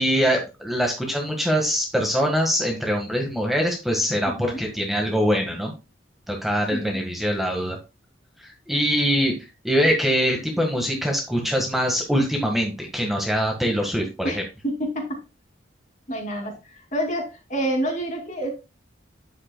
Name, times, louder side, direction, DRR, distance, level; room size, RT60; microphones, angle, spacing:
voice 1, 0.0-5.7 6.3-7.8 8.4-9.3 9.6-14.4, equal, ahead, 1 dB, 1.5 m, -23 dB
voice 2, 4.2-4.6 6.7-7.1 14.2-15.2 16.1-18.5, right 1 dB, 40° left, 3 dB, 2.5 m, -28 dB
9.7 x 7.8 x 2.2 m, 0.27 s
head